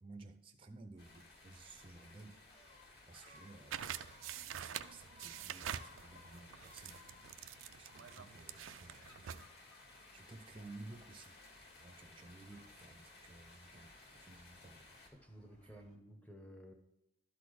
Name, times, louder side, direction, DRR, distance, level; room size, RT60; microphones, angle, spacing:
voice 1, 0.0-2.4 3.1-3.9 4.6-7.0 7.8-9.5 10.1-11.4 11.8-13.9 14.2-14.8, right 2 dB, 25° right, 6 dB, 0.5 m, -55 dB
Gull seagull, 0.9-16.0, left 2 dB, 30° left, 1.8 m, -64 dB
sound 1, 1.0-15.1, left 2 dB, 55° left, 1.8 m, -60 dB
sound 2, 3.7-9.5, right 9 dB, 80° right, 0.4 m, -46 dB
voice 2, 15.1-16.7, equal, 5° left, 5 dB, 0.8 m, -54 dB
12.0 x 4.1 x 4.8 m, 0.87 s
head